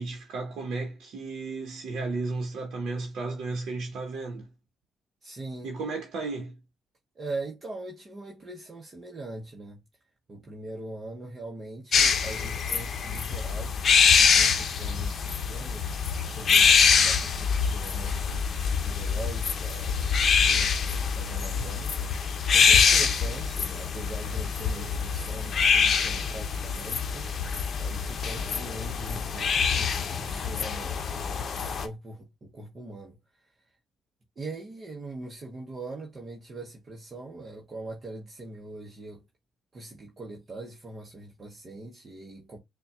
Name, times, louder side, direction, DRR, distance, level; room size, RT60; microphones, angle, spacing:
voice 1, 0.0-4.5 5.6-6.6, right 3 dB, 75° right, 0.9 m, -34 dB
voice 2, 5.2-5.7 7.1-9.8 10.3-13.8 14.2-16.0 16.2-18.5 18.8-22.0 22.5-33.5 34.4-39.2 39.7-42.6, right 2 dB, 35° right, 0.9 m, -42 dB
sound 1, 11.9-31.9, left 6 dB, 55° left, 0.6 m, -25 dB
6.6 x 2.3 x 2.3 m
cardioid pair, 90°, 0 cm